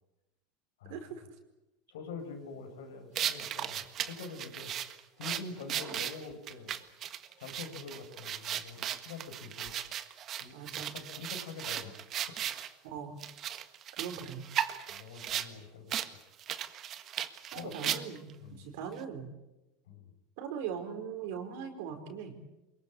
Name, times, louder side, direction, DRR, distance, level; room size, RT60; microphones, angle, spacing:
voice 1, 0.8-1.2 10.5-10.9 12.8-13.2 14.0-14.4 17.5-19.3 20.4-22.4, right 7 dB, 70° right, 5 dB, 4.8 m, -40 dB
voice 2, 1.9-4.7 5.2-6.8 7.4-9.8 10.4-12.0 12.3-12.4 12.7-12.8 14.9-16.0 17.6-17.9 18.4-18.6 19.9-20.1, left 4 dB, 85° left, 6 dB, 5.8 m, -45 dB
sound 1, 3.1-12.7 13.2-15.5 15.9-16.1 16.4-18.3, right 10 dB, 40° right, 1.6 m, -36 dB
24.0 x 22.0 x 8.6 m, 0.99 s
supercardioid pair, 110°, 0 cm